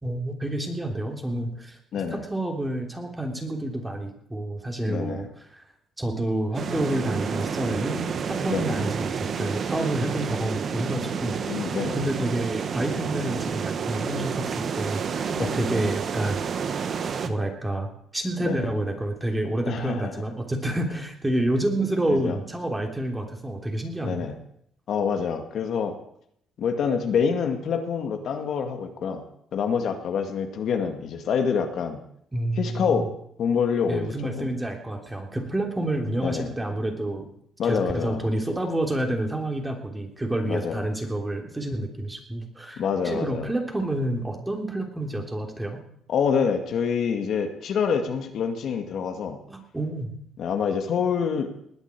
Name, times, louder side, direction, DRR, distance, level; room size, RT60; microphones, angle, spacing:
voice 1, 0.0-5.6 6.0-16.5 17.0-24.3 32.3-33.1 33.9-37.3 37.6-45.8 49.5-50.1, right 1 dB, 10° right, 3 dB, 3.2 m, -29 dB
voice 2, 1.9-2.2 4.9-5.2 8.5-8.8 11.5-12.0 15.3-15.6 18.4-18.7 19.7-20.2 22.1-22.4 24.0-24.4 24.9-26.0 26.6-29.2 29.5-32.0 32.6-33.1 33.4-34.5 36.2-36.5 37.6-38.2 40.5-40.8 42.8-43.5 46.1-49.4 50.4-51.5, left 6 dB, 60° left, 6 dB, 2.0 m, -26 dB
sound 1, 6.5-17.3, right 6 dB, 50° right, 1.4 m, -29 dB
20.0 x 8.1 x 8.4 m, 0.71 s
cardioid pair, 110°, 0 cm